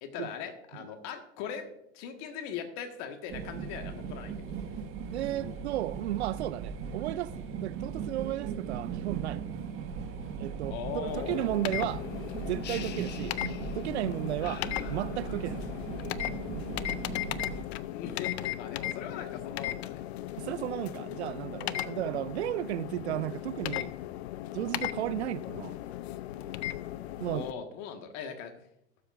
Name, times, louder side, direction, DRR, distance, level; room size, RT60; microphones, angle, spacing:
voice 1, 0.0-1.7 1.9-4.6 10.2-10.3 10.7-11.5 17.9-20.0 27.3-28.5, left 7 dB, 50° left, 1.7 m, -40 dB
sound 1, 3.3-17.6, right 6 dB, 40° right, 1.8 m, -38 dB
voice 2, 5.1-9.4 10.4-12.0 12.5-13.3 13.7-14.6 14.9-15.6 20.4-23.9 24.5-25.8 27.2-27.5, right 14 dB, 75° right, 0.5 m, -34 dB
sound 2, 11.1-27.5, left 15 dB, 70° left, 0.5 m, -37 dB
sound 3, 12.6-14.0 14.4-15.7, left 11 dB, 30° left, 0.7 m, -46 dB
18.5 x 7.6 x 2.6 m
hypercardioid pair, 95°, 33 cm